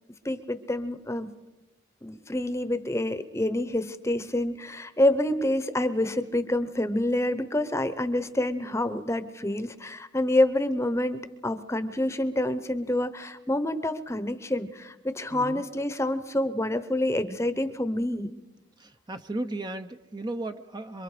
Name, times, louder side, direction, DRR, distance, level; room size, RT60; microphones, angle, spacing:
voice 1, 0.2-1.3 2.0-18.3, left 1 dB, 15° left, 11 dB, 0.9 m, -27 dB
voice 2, 15.3-15.6 18.8-21.0, right 2 dB, 20° right, 7 dB, 0.6 m, -35 dB
27.0 x 23.5 x 5.0 m, 1.1 s
head